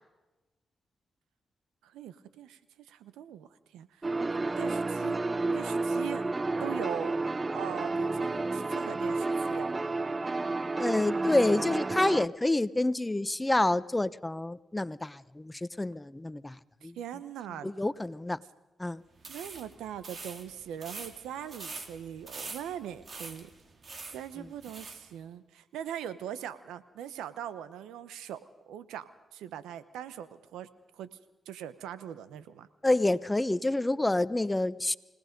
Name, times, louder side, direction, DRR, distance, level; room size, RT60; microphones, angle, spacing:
voice 1, 1.8-4.1 4.6-5.2 5.5-6.2 6.6-7.2 7.5-9.7 16.8-17.7 19.3-23.5 24.1-28.4 28.7-30.7 31.0-31.1 31.5-32.7, right 10 dB, 90° right, 14 dB, 0.9 m, -41 dB
sound 1, 4.0-12.3, right 3 dB, 30° right, 0.6 m, -31 dB
voice 2, 10.8-17.0 17.6-18.4 18.8-19.0 24.4-24.5 32.8-35.0, left 2 dB, 20° left, 17 dB, 0.8 m, -28 dB
sound 2, 19.2-25.1, right 4 dB, 55° right, 2.7 m, -45 dB
29.0 x 18.0 x 5.3 m, 1.1 s
supercardioid pair, 50°, 0 cm